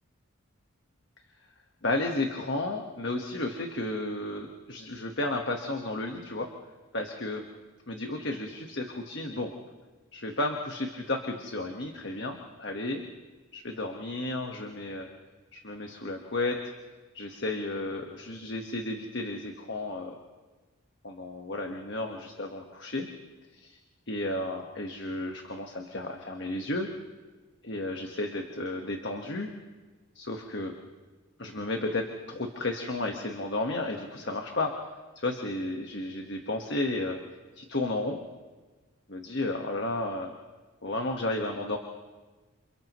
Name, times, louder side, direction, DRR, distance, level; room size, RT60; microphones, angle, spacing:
voice 1, 1.8-6.5 6.9-7.4 7.9-9.5 10.1-13.0 13.5-15.1 15.5-16.6 17.1-20.2 21.0-23.1 23.5-23.8 24.1-26.9 27.6-29.5 30.1-30.7 31.4-34.8 35.1-37.2 37.6-38.2 39.1-40.3 40.8-41.8, left 2 dB, 55° left, 2 dB, 1.5 m, -33 dB
29.0 x 28.5 x 3.2 m, 1.3 s
head